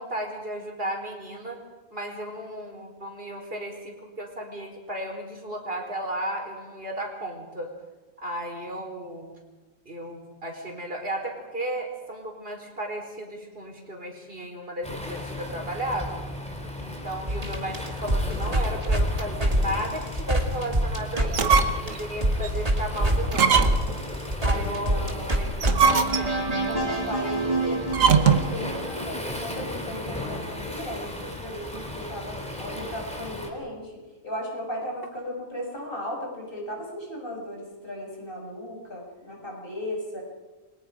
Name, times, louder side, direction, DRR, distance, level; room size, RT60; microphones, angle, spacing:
voice 1, 0.0-1.6 1.9-7.7 8.2-9.3 9.8-16.2 16.8-21.5 21.8-23.7 24.4-25.1 25.4-26.6, right 1 dB, 45° right, 2 dB, 4.7 m, -34 dB
Waves surf, 14.8-33.5, left 1 dB, 5° left, 3.2 m, -36 dB
sound 1, 17.3-21.6 21.9-29.1, right 1 dB, 30° right, 2.6 m, -26 dB
sound 2, 21.2-22.0 22.4-22.5 23.3-24.0 25.5-26.5 27.9-28.6, right 6 dB, 85° right, 1.7 m, -21 dB
voice 2, 24.9-25.3 26.7-40.2, left 1 dB, 45° left, -1 dB, 6.4 m, -36 dB
30.0 x 23.5 x 5.2 m, 1.2 s
omnidirectional pair, 1.3 m